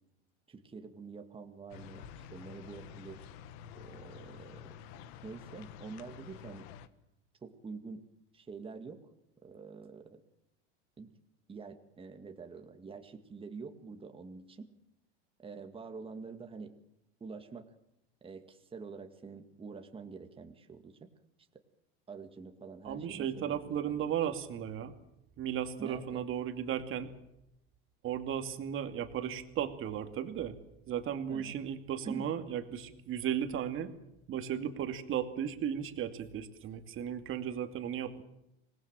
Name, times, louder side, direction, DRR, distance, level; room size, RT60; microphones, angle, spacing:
voice 1, 0.5-3.3 3.7-4.7 5.2-6.7 7.4-8.0 8.3-9.1 9.4-10.2 11.0-11.1 11.5-14.7 15.4-16.7 17.2-17.7 18.2-21.1 22.1-24.1 25.8-26.2 31.3-31.5 32.0-32.3, right 4 dB, 15° right, 6 dB, 2.2 m, -46 dB
sound 1, 1.7-6.9, left 8 dB, 65° left, 1.6 m, -49 dB
voice 2, 22.8-24.9 25.4-27.1 28.0-30.6 30.9-33.9 34.3-38.2, right 9 dB, 40° right, 7 dB, 2.5 m, -35 dB
25.5 x 19.5 x 7.6 m, 0.84 s
supercardioid pair, 125°, 33 cm